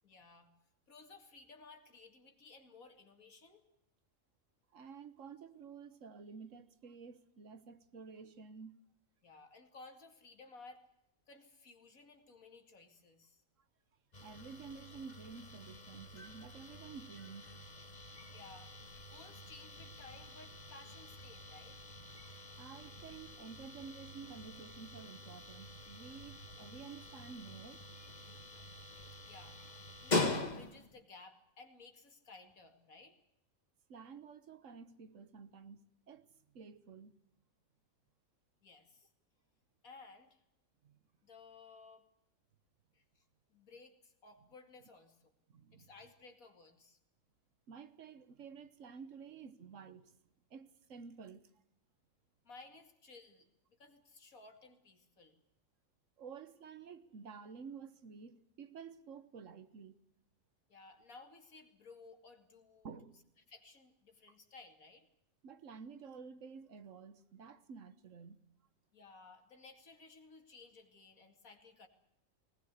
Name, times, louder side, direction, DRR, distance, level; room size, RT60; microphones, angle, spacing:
voice 1, 0.0-0.5 0.9-3.6 9.2-10.8 11.3-13.4 18.3-18.7 19.1-21.8 29.1-33.2 38.6-39.1 39.8-40.4 41.2-42.1 42.9-43.2 43.5-45.3 45.7-47.0 52.4-55.4 60.7-62.9 63.5-65.1 68.9-71.9, left 3 dB, 85° left, 2.8 m, -57 dB
voice 2, 4.7-8.8 14.2-17.5 22.6-27.8 33.9-35.8 36.1-36.3 36.5-37.1 40.8-41.0 45.5-45.9 47.7-50.2 50.5-51.5 56.2-59.9 62.8-63.2 64.3-64.4 65.4-68.4, right 6 dB, 65° right, 1.4 m, -51 dB
sound 1, 14.1-31.0, left 2 dB, 30° left, 1.6 m, -43 dB
19.5 x 19.0 x 8.2 m
omnidirectional pair, 1.4 m